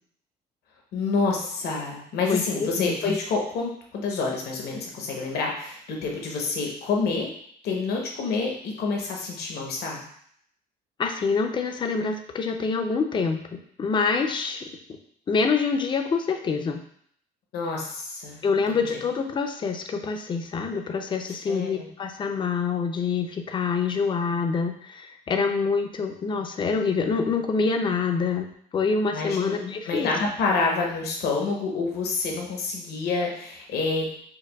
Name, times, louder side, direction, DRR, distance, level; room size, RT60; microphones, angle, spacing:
voice 1, 0.9-7.3 7.6-10.0 17.5-18.4 18.7-18.8 21.5-21.9 29.1-29.6 29.9-34.1, left 4 dB, 70° left, 0 dB, 0.9 m, -28 dB
voice 2, 2.3-3.2 11.0-13.4 13.8-14.7 15.3-16.8 18.4-28.5 28.7-30.1, left 5 dB, 30° left, 5 dB, 0.4 m, -26 dB
4.6 x 2.1 x 2.2 m, 0.66 s
cardioid pair, 110°, 17 cm